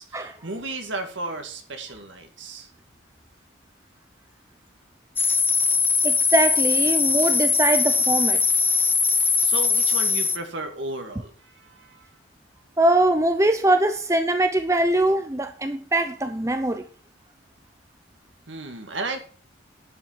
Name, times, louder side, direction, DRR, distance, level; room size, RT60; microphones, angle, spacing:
voice 1, 0.0-2.7 9.4-12.1 18.5-19.2, right 2 dB, 75° right, 2.2 m, -34 dB
sound 1, 5.2-10.4, left 5 dB, 10° left, 0.5 m, -21 dB
voice 2, 6.0-8.4 12.8-16.8, right 1 dB, 15° right, 0.7 m, -22 dB
11.0 x 5.7 x 7.5 m
head